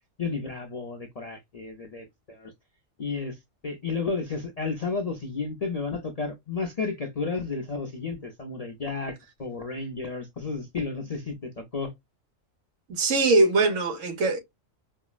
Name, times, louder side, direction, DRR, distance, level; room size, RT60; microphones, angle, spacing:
voice 1, 0.2-2.5 3.0-3.4 3.6-11.9, left 4 dB, 45° left, 0.5 m, -32 dB
voice 2, 12.9-14.4, right 2 dB, 70° right, 1.2 m, -22 dB
4.5 x 2.0 x 2.3 m
omnidirectional pair, 1.4 m